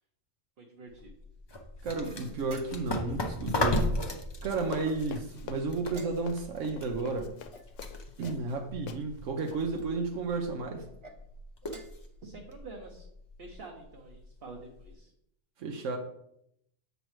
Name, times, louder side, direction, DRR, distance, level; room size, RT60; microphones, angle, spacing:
voice 1, 0.6-1.1 12.2-13.1 13.4-15.1, right 3 dB, 55° right, 0 dB, 1.0 m, -47 dB
sound 1, 0.9-14.9, left 1 dB, 30° left, 0.5 m, -37 dB
voice 2, 1.8-4.0 4.4-7.3 8.2-10.9 15.6-16.0, right 3 dB, 85° right, 4 dB, 1.1 m, -32 dB
sound 2, 2.0-3.1 4.8-5.4 5.9-6.6 7.5-8.5 9.3-9.9 10.8-11.2 11.6-12.1, right 2 dB, 30° right, 0.6 m, -52 dB
Run, 4.6-8.6 8.9-9.0 9.4-9.6, left 7 dB, 80° left, 0.9 m, -45 dB
7.5 x 5.1 x 3.2 m, 0.73 s
omnidirectional pair, 1.3 m